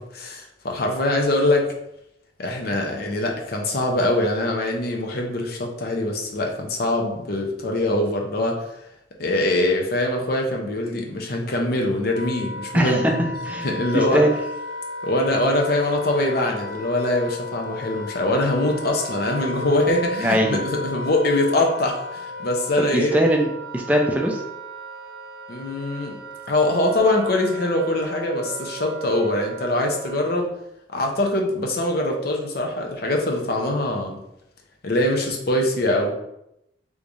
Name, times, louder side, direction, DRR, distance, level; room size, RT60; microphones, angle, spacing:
voice 1, 0.0-1.7 2.4-8.7 9.2-13.2 13.6-14.2 15.0-23.1 25.5-26.2 26.5-30.5 30.9-34.2 34.8-36.1, left 1 dB, 55° left, 1 dB, 0.6 m, -23 dB
Wind instrument woodwind instrument, 11.6-30.4, left 1 dB, 75° right, 0.5 m, -35 dB
voice 2, 12.7-13.7 13.9-14.3 20.2-20.6 22.8-23.5 23.7-24.4, equal, 10° right, 1 dB, 0.4 m, -21 dB
3.5 x 3.1 x 2.6 m, 0.81 s
head